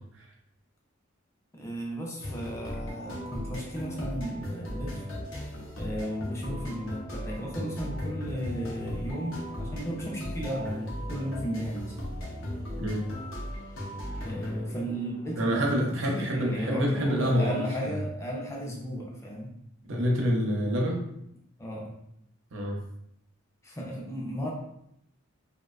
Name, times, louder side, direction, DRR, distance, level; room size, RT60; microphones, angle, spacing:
voice 1, 1.5-5.1 5.8-11.9 14.2-19.5 21.6-21.9 23.6-24.5, equal, 15° left, -2 dB, 0.4 m, -34 dB
sound 1, 2.2-17.5, equal, 80° left, 0.7 m, -38 dB
voice 2, 15.4-18.0 19.9-21.0 22.5-22.8, equal, 70° right, 0 dB, 0.5 m, -27 dB
2.5 x 2.1 x 2.3 m, 0.76 s
head